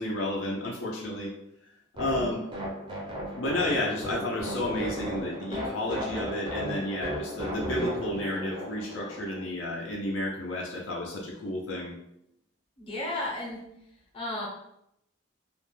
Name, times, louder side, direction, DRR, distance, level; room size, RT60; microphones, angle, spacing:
voice 1, 0.0-1.3 2.0-2.5 3.4-11.9, left 1 dB, 65° left, -2 dB, 0.5 m, -31 dB
sound 1, 2.0-9.4, equal, 25° right, 0.4 m, -35 dB
voice 2, 12.8-13.7 14.1-14.5, left 1 dB, 25° left, -3 dB, 0.7 m, -33 dB
2.4 x 2.1 x 3.1 m, 0.78 s
head